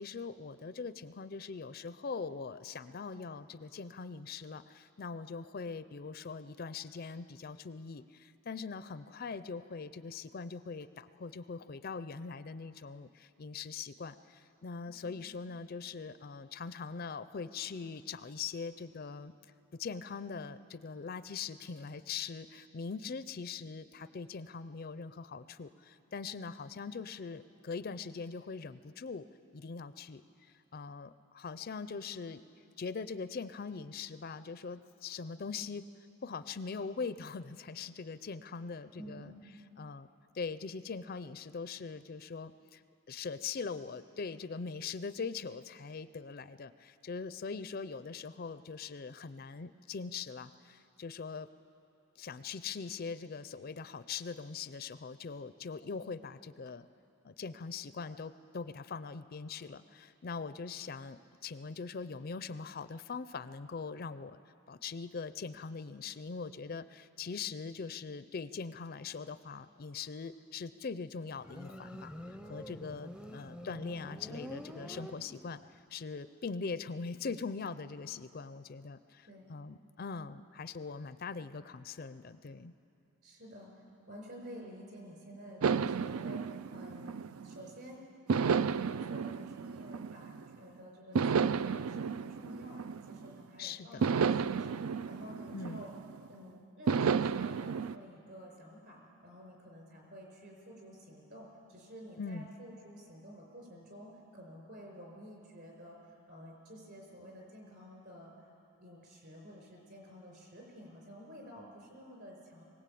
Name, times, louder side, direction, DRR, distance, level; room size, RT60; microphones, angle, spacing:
voice 1, 0.0-19.3 19.7-29.3 29.5-32.4 32.8-35.9 36.2-39.3 39.8-40.1 40.3-42.8 43.1-51.5 52.2-56.9 57.2-64.4 64.7-72.1 72.4-75.6 75.9-82.7 93.6-94.0 95.5-95.8 102.2-102.5, left 5 dB, 45° left, 13 dB, 0.4 m, -42 dB
voice 2, 39.0-39.3 79.2-79.5 83.2-83.7 84.1-88.0 88.4-92.8 93.1-94.8 95.1-95.9 96.3-106.0 106.3-108.3 108.8-112.6, equal, 50° right, 1 dB, 5.4 m, -51 dB
Motorcycle, 71.4-75.7, equal, 5° right, 0.6 m, -47 dB
sound 1, 85.6-87.7 88.3-90.5 91.1-93.4 94.0-96.3 96.9-97.9, right 6 dB, 85° right, 0.4 m, -32 dB
21.5 x 18.5 x 8.5 m, 2.7 s
head